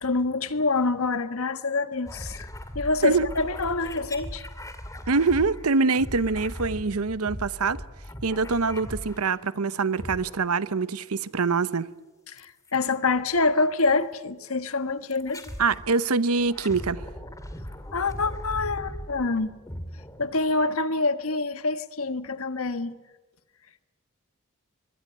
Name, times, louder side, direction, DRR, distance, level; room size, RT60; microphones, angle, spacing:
voice 1, 0.0-2.5 2.7-4.4 12.3-15.4 17.9-19.5 20.2-23.0, left 3 dB, 75° left, 1.4 m, -26 dB
sound 1, 2.1-9.5 9.9-10.7 12.4-12.8 13.8-14.0 15.1-15.9 16.3-20.7, equal, 15° left, 2.4 m, -39 dB
voice 2, 5.1-7.8 8.2-11.9 15.6-17.1, right 4 dB, 85° right, 0.9 m, -24 dB
24.0 x 21.5 x 9.7 m
head